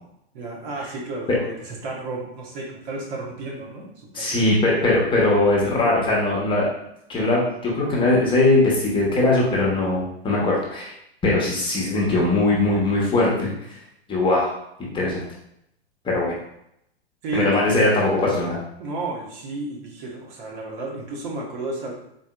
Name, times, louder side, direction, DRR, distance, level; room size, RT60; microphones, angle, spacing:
voice 1, 0.3-3.9 4.1-4.4 17.2-17.9 18.8-21.9, right 2 dB, 45° right, -2 dB, 1.1 m, -32 dB
voice 2, 4.1-6.7 7.1-10.9 11.2-13.5 14.1-14.5 14.9-15.2 16.0-16.3 17.3-18.6, left 2 dB, 15° left, -4 dB, 0.9 m, -20 dB
3.9 x 3.6 x 2.2 m, 0.77 s
hypercardioid pair, 110°, 32 cm